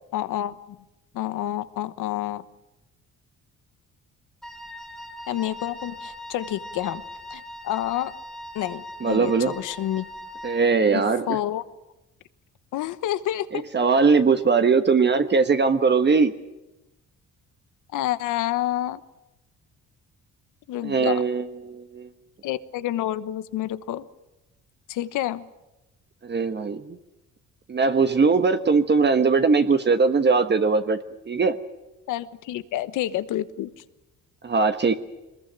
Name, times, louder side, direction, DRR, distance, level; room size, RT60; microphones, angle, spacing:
voice 1, 0.1-0.6 1.1-2.4 5.3-7.0 7.3-8.1 8.5-10.0 10.9-11.6 12.7-13.6 17.9-19.0 20.7-21.2 22.4-24.1 24.9-25.4 32.1-33.8, left 13 dB, 90° left, 13 dB, 1.2 m, -28 dB
Wind instrument woodwind instrument, 4.4-10.8, left 1 dB, ahead, 1.7 m, -40 dB
voice 2, 9.0-9.6 10.4-11.3 13.5-16.4 20.8-22.1 26.2-27.0 27.7-31.0 31.3-31.6 34.4-34.9, right 4 dB, 35° right, 8 dB, 1.3 m, -20 dB
22.5 x 21.0 x 9.1 m, 0.97 s
cardioid pair, 90°, 30 cm